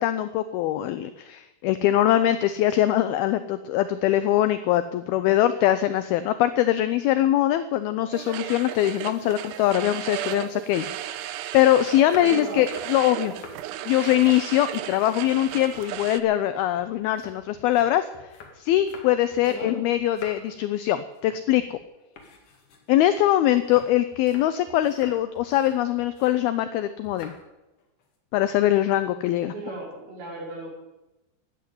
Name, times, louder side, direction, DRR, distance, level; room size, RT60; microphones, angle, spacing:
voice 1, 0.0-13.3 13.9-18.1 18.6-21.8 22.9-27.3 28.3-29.5, left 13 dB, 85° left, 12 dB, 2.2 m, -22 dB
sound 1, 8.1-16.2, right 13 dB, 80° right, 2.8 m, -35 dB
sound 2, 11.9-13.7 14.0-15.2 15.5-19.7 20.0-20.6 21.0-21.3 21.6-21.8 22.1-26.5 27.0-27.4 27.8-28.2, left 4 dB, 50° left, 3.2 m, -48 dB
voice 2, 12.2-12.7 19.5-19.8 29.5-30.7, right 1 dB, 60° right, -3 dB, 7.0 m, -37 dB
14.0 x 10.0 x 9.4 m, 1.0 s
omnidirectional pair, 5.1 m